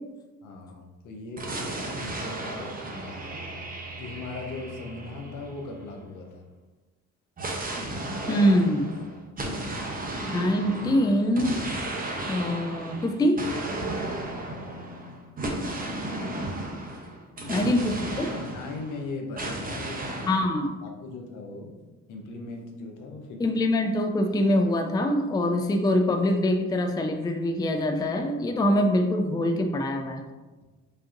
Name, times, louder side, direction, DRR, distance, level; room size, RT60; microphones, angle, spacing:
voice 1, 0.4-3.3 4.0-6.4 9.4-10.2 16.1-16.4 17.4-17.7 18.3-20.5 20.8-21.7 22.1-23.4, left 3 dB, 80° left, 2 dB, 0.8 m, -39 dB
sound 1, 1.4-6.1 7.4-19.0 19.4-20.4, right 2 dB, 30° right, 0.8 m, -34 dB
voice 2, 8.2-8.9 10.3-11.6 12.3-13.4 17.5-18.3 20.3-20.8 23.4-30.2, left 1 dB, 15° left, 5 dB, 0.4 m, -24 dB
5.2 x 2.8 x 2.5 m, 1.2 s
cardioid pair, 90°, 30 cm